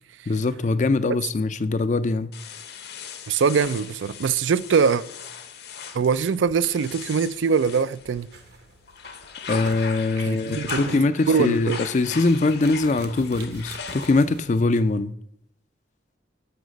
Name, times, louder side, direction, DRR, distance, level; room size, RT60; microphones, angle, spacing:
voice 1, 0.3-2.3 9.5-15.1, left 3 dB, 40° left, 0.4 m, -22 dB
sound 1, 2.3-8.5 8.9-14.5, left 6 dB, 55° left, 0.9 m, -38 dB
voice 2, 3.3-5.0 5.9-8.3 10.3-11.0 11.3-11.8, right 6 dB, 75° right, 0.4 m, -22 dB
sound 2, 8.3-14.8, right 3 dB, 55° right, 0.9 m, -47 dB
12.5 x 5.7 x 5.2 m
head